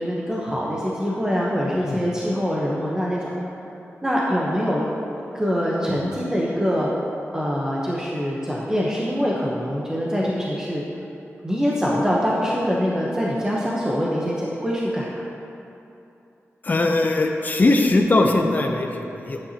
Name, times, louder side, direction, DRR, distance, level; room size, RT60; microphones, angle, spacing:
voice 1, 0.0-3.4 4.0-4.8 5.3-6.9 7.3-10.8 11.4-15.1, equal, 15° right, -5 dB, 1.0 m, -24 dB
voice 2, 16.6-19.4, left 2 dB, 35° left, 3 dB, 0.7 m, -20 dB
11.0 x 9.7 x 2.9 m, 2.8 s
wide cardioid pair, 140°, 5 cm